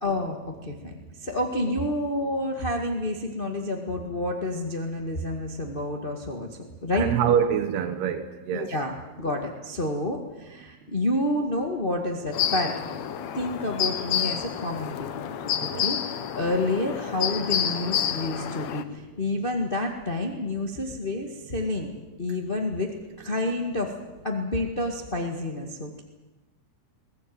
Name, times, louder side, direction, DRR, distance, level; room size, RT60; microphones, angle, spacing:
voice 1, 0.0-7.1 8.5-12.7 13.3-21.9 22.2-22.9 23.2-23.9 24.2-26.0, left 1 dB, 30° left, 2 dB, 0.9 m, -29 dB
voice 2, 6.9-8.7 15.6-15.9, right 8 dB, 90° right, 7 dB, 3.4 m, -25 dB
sound 1, 12.3-18.8, left 9 dB, 70° left, 1.7 m, -29 dB
22.0 x 18.5 x 9.4 m, 1.1 s
omnidirectional pair, 4.5 m